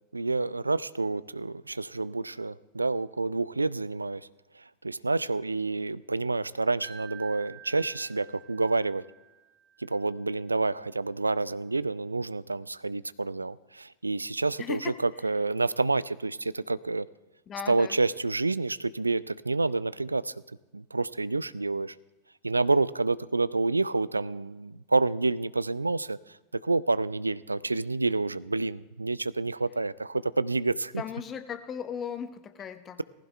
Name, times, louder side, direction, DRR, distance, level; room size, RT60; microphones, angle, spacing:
voice 1, 0.1-4.3 4.5-9.0 9.8-17.1 17.7-20.4 20.7-22.0 22.4-31.0, right 3 dB, 80° right, 19 dB, 0.4 m, -28 dB
Wind chime, 6.8-9.9, right 8 dB, 20° right, 2.2 m, -49 dB
voice 2, 14.6-15.0 17.5-18.0 31.0-33.0, left 8 dB, 25° left, 10 dB, 1.0 m, -37 dB
18.5 x 15.5 x 3.3 m, 1.1 s
figure-of-eight pair, 90°, 0 cm